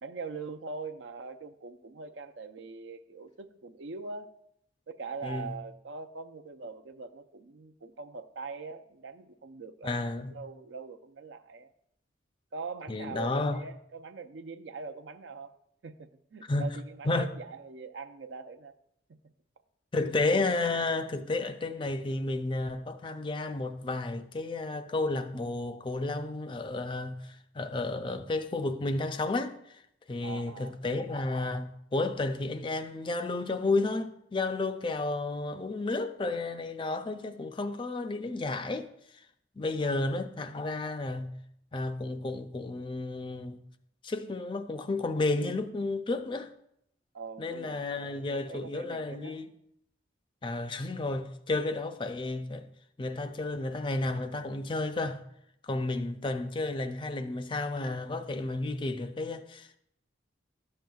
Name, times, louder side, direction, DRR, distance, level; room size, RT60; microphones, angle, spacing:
voice 1, 0.0-4.3 4.9-10.0 10.3-11.7 12.5-15.5 15.8-18.7 30.2-30.8 39.8-40.0 47.1-47.8 48.1-49.4, right 4 dB, 75° right, 0.5 m, -42 dB
voice 2, 5.2-5.5 9.8-10.4 12.9-13.6 16.5-16.8 17.0-17.3 19.9-29.8 30.1-38.9 39.6-41.3 41.7-43.6 44.0-46.5 47.4-49.5 50.4-52.7 53.0-55.2 55.6-59.8, left 2 dB, 25° left, 0.4 m, -32 dB
12.5 x 7.6 x 2.3 m
head